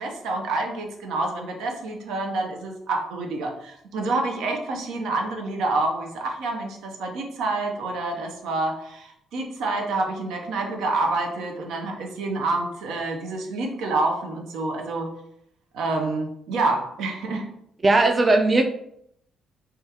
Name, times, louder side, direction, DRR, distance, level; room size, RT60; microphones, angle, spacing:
voice 1, 0.0-15.1 15.7-17.5, right 2 dB, 85° right, 2 dB, 0.6 m, -27 dB
voice 2, 17.8-18.6, right 2 dB, 30° right, 5 dB, 0.3 m, -18 dB
3.5 x 2.3 x 2.8 m, 0.74 s
cardioid pair, 90°, 0 cm